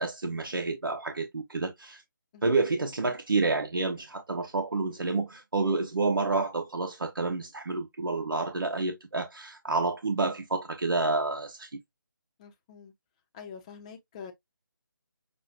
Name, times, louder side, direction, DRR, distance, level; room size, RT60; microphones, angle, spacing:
voice 1, 0.0-2.0 2.4-11.7, right 3 dB, 75° right, 1.0 m, -29 dB
voice 2, 12.4-12.9 13.3-14.3, left 6 dB, 20° left, 0.7 m, -45 dB
6.5 x 2.3 x 2.9 m
figure-of-eight pair, 160°, 12 cm